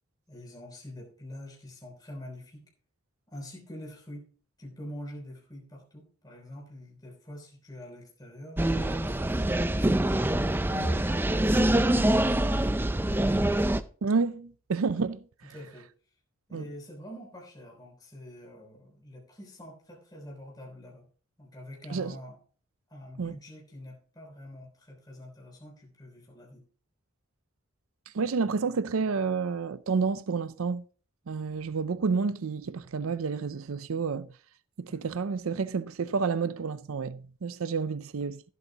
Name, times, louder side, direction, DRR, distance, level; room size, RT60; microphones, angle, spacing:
voice 1, 0.3-2.7 3.3-4.3 4.6-10.3 10.7-13.8 15.4-15.9 16.5-21.1 21.4-22.4 22.9-26.6 34.9-35.1, left 1 dB, 20° left, 3.4 m, -45 dB
sound 1, 8.6-13.8, right 1 dB, 10° right, 0.4 m, -25 dB
voice 2, 14.0-15.2 16.5-16.7 21.9-22.1 23.2-23.3 28.1-30.8 31.3-34.3 34.8-38.4, right 5 dB, 75° right, 0.5 m, -30 dB
15.0 x 8.4 x 2.9 m
head